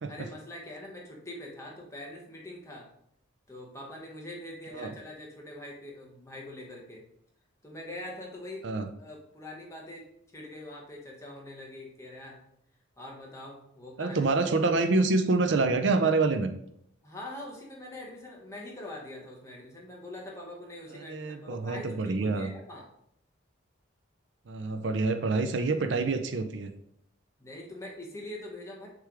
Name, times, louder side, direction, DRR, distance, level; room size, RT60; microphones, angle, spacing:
voice 1, 0.1-2.9 3.5-7.0 7.6-8.7 9.0-10.1 10.3-12.4 13.0-14.2 17.0-22.8 27.4-28.9, left 1 dB, 15° left, -2 dB, 1.3 m, -43 dB
voice 2, 14.0-16.5 20.9-22.5 24.5-26.7, right 3 dB, 65° right, 8 dB, 0.5 m, -27 dB
6.6 x 3.4 x 4.8 m, 0.71 s
head